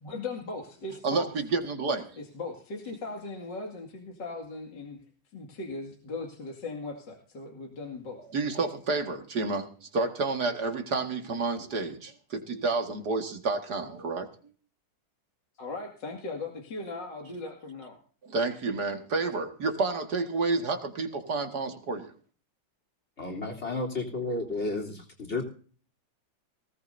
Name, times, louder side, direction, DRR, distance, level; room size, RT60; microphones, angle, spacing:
voice 1, 0.0-1.3 2.2-5.0 5.3-8.3 15.6-18.0, left 3 dB, 60° left, 1 dB, 2.9 m, -38 dB
voice 2, 1.5-2.2 8.3-14.3 18.2-22.1, right 3 dB, 55° right, 5 dB, 2.4 m, -30 dB
voice 3, 23.2-25.4, left 2 dB, 35° left, 4 dB, 3.7 m, -32 dB
20.0 x 18.0 x 2.7 m, 0.42 s
omnidirectional pair, 2.2 m